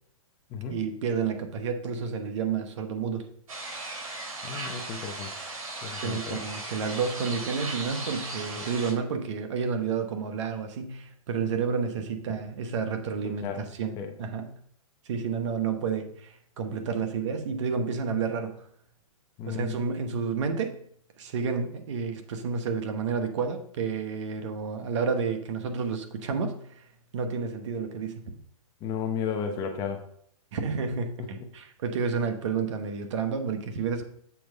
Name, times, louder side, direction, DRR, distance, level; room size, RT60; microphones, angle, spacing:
voice 1, 0.7-3.3 6.0-14.5 15.0-18.5 19.5-20.8 21.2-26.8 27.1-28.4 30.5-34.1, right 5 dB, 55° right, 7 dB, 1.1 m, -30 dB
sound 1, 3.5-8.9, right 2 dB, 80° right, 3.2 m, -37 dB
voice 2, 4.4-5.3 5.8-6.4 8.6-8.7 13.2-13.6 14.0-14.1 19.4-19.8 28.8-30.0 31.2-31.3, left 7 dB, 20° left, 4 dB, 0.8 m, -33 dB
7.1 x 4.6 x 5.3 m, 0.65 s
hypercardioid pair, 150°, 18 cm